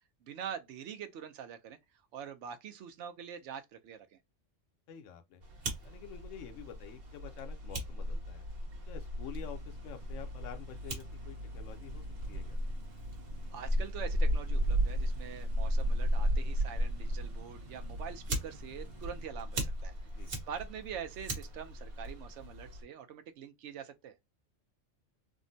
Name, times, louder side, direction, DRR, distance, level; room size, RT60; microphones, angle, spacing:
voice 1, 0.2-1.8 2.1-4.2 13.5-19.9 20.5-24.2, right 8 dB, 70° right, 0.9 m, -44 dB
voice 2, 4.9-5.4 5.8-8.5 8.9-12.6 20.1-20.3, left 8 dB, 80° left, 0.9 m, -48 dB
Fire, 5.4-22.8, equal, 50° right, 1.2 m, -35 dB
sound 1, 9.3-19.3, right 3 dB, 35° right, 0.9 m, -56 dB
3.6 x 2.1 x 2.6 m
omnidirectional pair, 1.3 m